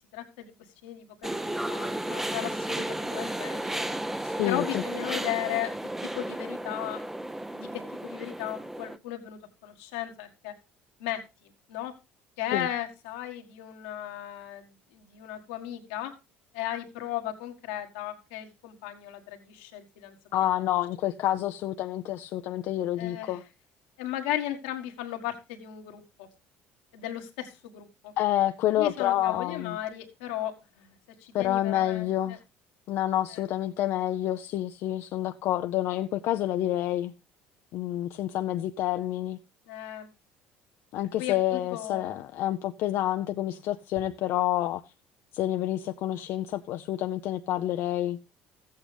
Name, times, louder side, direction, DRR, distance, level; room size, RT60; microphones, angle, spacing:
voice 1, 0.1-0.5 0.8-1.3 1.7-3.8 4.4-5.7 6.0-7.0 7.5-10.5 11.0-11.9 12.4-16.1 16.5-20.1 23.0-23.4 24.0-26.3 26.9-28.1 28.8-30.9 31.4-32.4 33.3-33.4 39.7-40.1 41.2-42.1, left 12 dB, 85° left, 1.7 m, -36 dB
sound 1, 1.2-9.0, right 1 dB, 5° right, 0.7 m, -33 dB
voice 2, 4.2-4.8 12.5-12.7 20.3-23.4 28.2-29.8 31.3-32.4 32.9-37.1 37.7-39.4 40.9-44.8 45.3-48.2, left 13 dB, 65° left, 0.6 m, -28 dB
13.5 x 8.6 x 3.4 m
supercardioid pair, 85°, 5 cm